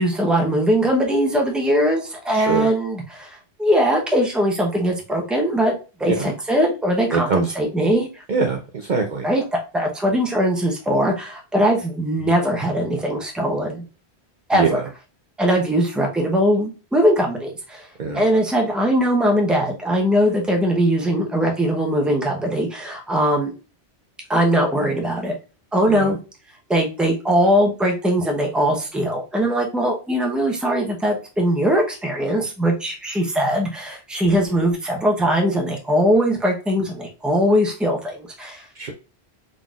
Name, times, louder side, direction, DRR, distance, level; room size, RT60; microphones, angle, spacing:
voice 1, 0.0-5.7 6.0-8.2 9.2-13.9 14.5-14.8 15.4-17.9 18.1-23.5 24.3-25.4 25.7-26.2 26.7-38.7, equal, ahead, 1 dB, 0.8 m, -20 dB
voice 2, 2.3-2.7 6.0-6.3 7.1-7.5 8.3-9.3 14.5-14.8 18.0-18.3 25.9-26.1 38.8-38.9, right 4 dB, 50° right, 2 dB, 0.7 m, -23 dB
3.9 x 3.8 x 2.4 m, 0.32 s
omnidirectional pair, 1.1 m